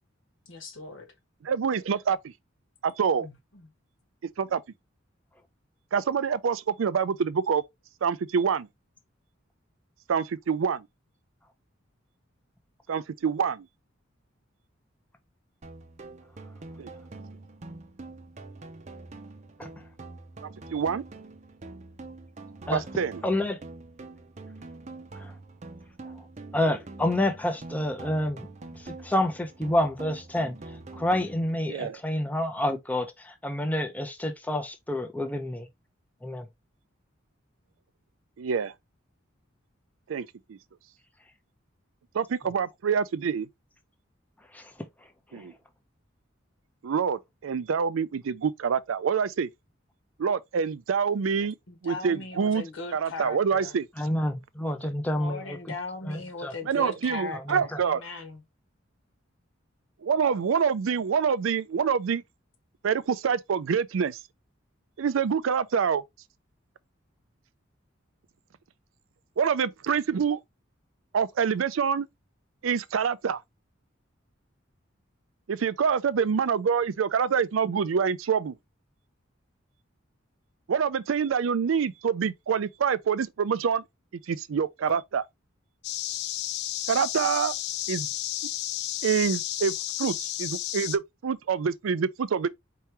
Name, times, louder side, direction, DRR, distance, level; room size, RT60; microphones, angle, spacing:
voice 1, 0.5-1.1 3.2-3.7 51.7-53.8 55.1-58.4, left 2 dB, 70° left, 1.4 m, -38 dB
voice 2, 1.4-2.2 2.8-3.3 4.4-4.6 5.9-7.6 8.0-8.7 10.1-10.9 12.9-13.7 16.8-16.9 20.4-21.0 22.7-23.2 31.7-32.0 38.4-38.7 40.1-40.6 42.1-43.5 45.3-45.5 46.8-49.5 50.2-51.6 51.8-52.6 52.9-53.8 56.7-58.0 60.0-62.2 62.8-64.2 65.0-66.0 69.4-70.4 71.1-72.1 72.6-73.4 75.5-78.6 80.7-83.8 84.3-85.2 86.9-87.5 87.9-88.1 89.0-89.7 90.0-92.5, right 6 dB, 80° right, 0.4 m, -26 dB
sound 1, 15.6-31.6, right 2 dB, 35° right, 0.6 m, -45 dB
voice 3, 23.2-23.6 25.2-25.3 26.5-28.5 28.8-35.7 36.2-36.5 44.5-45.1 45.3-45.5 54.0-55.6 56.1-56.5 57.3-57.8, left 1 dB, 10° left, 0.6 m, -29 dB
sound 2, 85.8-91.0, left 14 dB, 55° left, 0.3 m, -32 dB
4.6 x 2.9 x 3.3 m
head